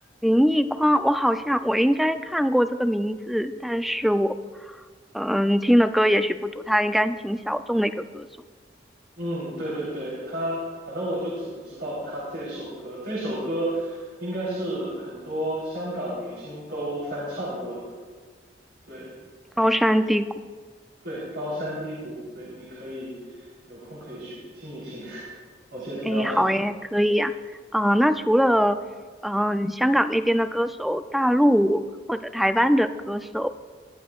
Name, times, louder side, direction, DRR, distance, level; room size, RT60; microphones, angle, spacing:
voice 1, 0.2-4.3 5.1-8.3 19.6-20.3 26.1-27.3 27.7-28.8 29.2-31.8 32.1-33.5, equal, ahead, 10 dB, 0.3 m, -22 dB
voice 2, 9.2-17.8 18.9-19.1 21.0-25.3 25.7-26.5, right 1 dB, 70° right, -7 dB, 3.6 m, -32 dB
21.0 x 11.5 x 2.4 m, 1.5 s
head